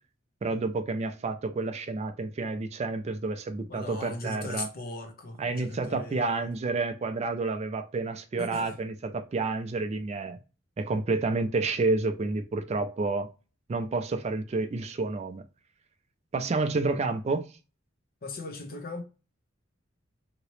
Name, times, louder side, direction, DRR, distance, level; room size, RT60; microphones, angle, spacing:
voice 1, 0.4-4.7 5.4-10.4 10.8-13.3 13.7-15.4 16.3-17.4, right 3 dB, 35° right, 0.3 m, -29 dB
voice 2, 3.7-6.5 8.4-8.8 18.2-19.0, left 2 dB, 50° left, 0.8 m, -39 dB
2.9 x 2.8 x 3.0 m
head